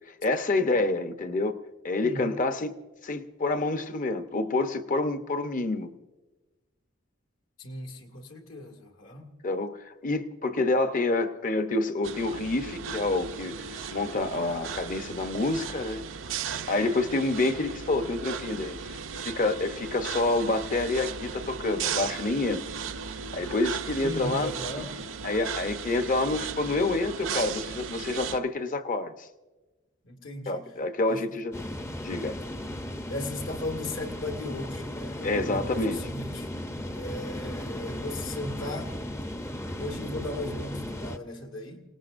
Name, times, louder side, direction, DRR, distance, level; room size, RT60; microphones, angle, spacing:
voice 1, 0.1-1.6 1.8-2.8 3.0-5.9 9.4-16.0 16.7-19.0 19.2-22.6 23.3-24.5 25.2-29.3 30.5-31.5 32.0-32.4 35.2-36.0, left 2 dB, 40° left, 0.9 m, -28 dB
voice 2, 7.6-9.3 24.0-24.9 30.0-30.7 31.1-31.2 33.1-36.5 36.9-38.9 39.8-41.8, left 1 dB, 70° left, 2.0 m, -37 dB
sound 1, 12.0-28.4, right 6 dB, 70° right, 0.6 m, -36 dB
sound 2, 31.5-41.2, left 1 dB, 15° left, 0.6 m, -36 dB
28.0 x 18.5 x 2.6 m
head